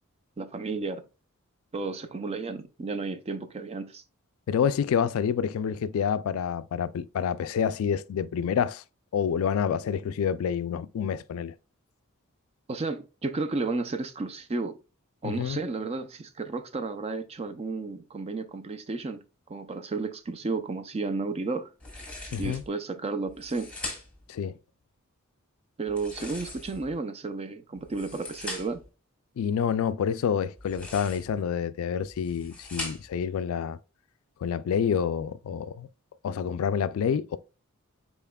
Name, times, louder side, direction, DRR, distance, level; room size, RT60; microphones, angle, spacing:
voice 1, 0.4-1.0 1.7-4.0 12.7-14.8 15.2-19.2 19.5-21.7 22.4-23.7 25.8-28.8, right 3 dB, 30° right, 0.4 m, -32 dB
voice 2, 4.5-8.8 9.1-11.5 15.2-15.6 22.3-22.6 24.3-24.5 29.4-33.8 34.4-35.9 36.2-37.4, left 7 dB, 70° left, 0.3 m, -28 dB
sound 1, 21.8-22.7 23.3-24.3 25.9-27.0 27.8-28.9 30.5-31.4 32.0-33.2, left 2 dB, 5° left, 1.7 m, -40 dB
5.6 x 4.1 x 2.2 m
head